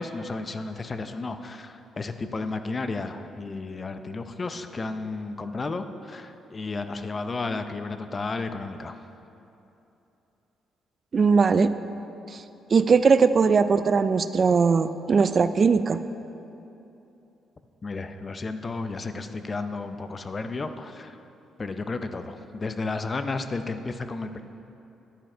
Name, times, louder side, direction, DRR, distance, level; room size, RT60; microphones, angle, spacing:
voice 1, 0.0-9.0 17.8-21.2 21.6-24.4, left 3 dB, 30° left, 9 dB, 0.6 m, -33 dB
voice 2, 11.1-11.7 12.7-16.0, right 5 dB, 45° right, 12 dB, 0.3 m, -20 dB
10.0 x 10.0 x 4.5 m, 2.9 s
cardioid pair, 90°, 0 cm